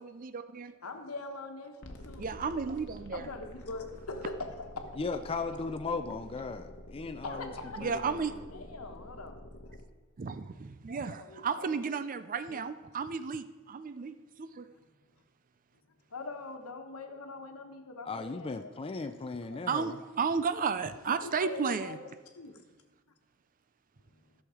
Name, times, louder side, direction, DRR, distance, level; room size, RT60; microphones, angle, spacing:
voice 1, 0.0-0.7 2.2-3.3 7.8-8.3 10.2-14.7 19.7-22.0, right 5 dB, 40° right, 12 dB, 0.5 m, -33 dB
voice 2, 0.8-2.3 3.1-4.5 4.8-4.9 7.2-7.8 8.5-9.4 11.1-11.7 12.5-12.7 16.1-18.9 19.4-19.6 21.1-22.0 22.3-22.6, left 3 dB, 80° left, 5 dB, 1.2 m, -42 dB
sound 1, 1.8-9.8, left 1 dB, 55° left, 1.2 m, -48 dB
voice 3, 4.9-8.6 18.0-20.0, left 4 dB, 25° left, 7 dB, 0.4 m, -37 dB
14.0 x 6.4 x 4.9 m, 1.2 s
head